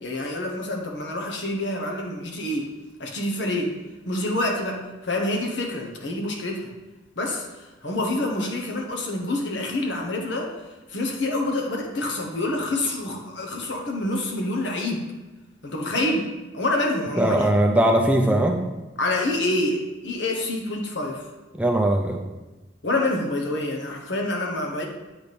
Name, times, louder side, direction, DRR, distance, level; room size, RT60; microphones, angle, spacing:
voice 1, 0.0-2.7 3.0-3.7 4.1-6.7 7.2-7.4 7.8-10.5 10.9-15.0 15.6-16.3 16.5-17.5 19.0-21.2 22.8-24.8, left 1 dB, 75° left, 1 dB, 1.1 m, -27 dB
voice 2, 17.2-18.6 21.6-22.2, right 1 dB, 5° right, 2 dB, 0.4 m, -20 dB
7.9 x 4.2 x 3.4 m, 1.1 s
head